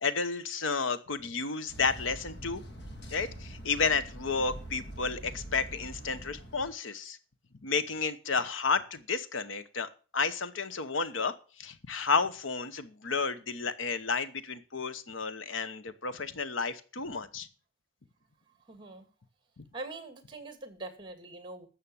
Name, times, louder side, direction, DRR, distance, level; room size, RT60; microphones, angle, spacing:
voice 1, 0.0-2.6 3.1-7.2 7.6-17.5 19.6-19.7, left 4 dB, 75° left, 13 dB, 1.0 m, -32 dB
sound 1, 1.7-6.7, right 1 dB, 55° left, 2.3 m, -44 dB
voice 2, 18.6-19.1 19.7-21.7, right 2 dB, 25° right, 9 dB, 2.4 m, -43 dB
13.0 x 7.5 x 7.0 m, 0.38 s
head